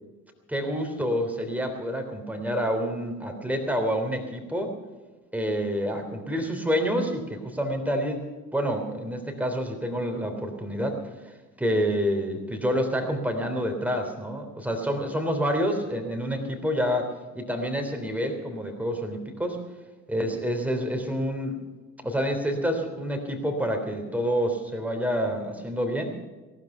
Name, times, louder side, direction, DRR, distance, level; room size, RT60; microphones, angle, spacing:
voice 1, 0.5-4.7 5.3-8.2 8.5-11.0 11.6-19.6 20.1-21.5 22.0-26.1, equal, 5° right, 4 dB, 3.2 m, -28 dB
18.5 x 12.5 x 5.7 m, 1.3 s
figure-of-eight pair, 55°, 42 cm